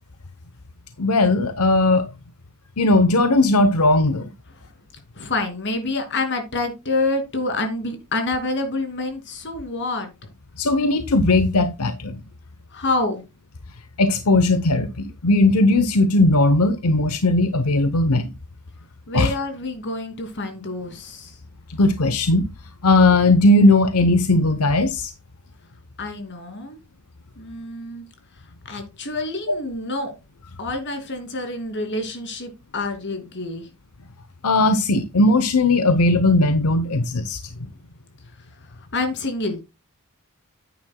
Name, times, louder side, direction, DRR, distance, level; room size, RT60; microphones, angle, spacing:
voice 1, 1.0-2.1 2.8-4.3 10.6-12.2 14.0-18.3 19.1-19.3 21.7-22.4 22.8-25.1 34.4-37.4, left 2 dB, 85° left, 0.8 m, -18 dB
voice 2, 5.1-10.3 12.7-13.2 19.1-21.4 26.0-26.8 27.4-28.1 28.6-30.1 30.6-33.7 38.6-39.6, left 2 dB, 55° left, 2.6 m, -27 dB
9.5 x 9.5 x 2.2 m
head